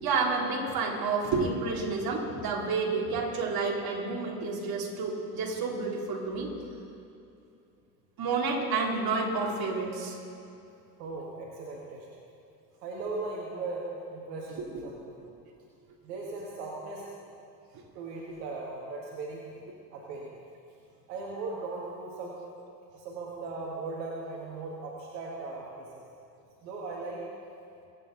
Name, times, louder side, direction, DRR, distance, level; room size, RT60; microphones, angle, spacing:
voice 1, 0.0-6.5 8.2-10.2 14.6-14.8, right 4 dB, 45° right, -1 dB, 3.0 m, -30 dB
voice 2, 11.0-12.1 12.8-15.2 16.0-17.1 18.0-19.4 19.9-20.3 21.1-22.4 22.9-26.0 26.6-27.2, right 3 dB, 75° right, -3 dB, 1.9 m, -38 dB
24.0 x 8.9 x 3.9 m, 2.7 s
hypercardioid pair, 65°, 49 cm